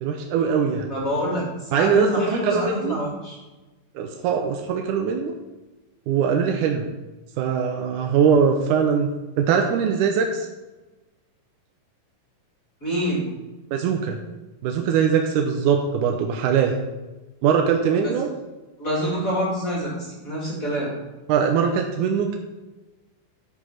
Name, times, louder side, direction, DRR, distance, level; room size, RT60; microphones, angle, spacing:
voice 1, 0.0-0.9 1.7-3.0 4.0-5.3 6.1-6.9 7.4-9.1 9.4-10.5 13.7-14.2 14.6-16.8 17.4-18.3 21.3-22.4, right 6 dB, 75° right, 3 dB, 2.1 m, -21 dB
voice 2, 0.9-3.4 12.8-13.2 18.0-18.1 18.8-20.9, equal, 25° left, -4 dB, 2.4 m, -26 dB
11.0 x 5.9 x 5.8 m, 1.1 s
omnidirectional pair, 4.0 m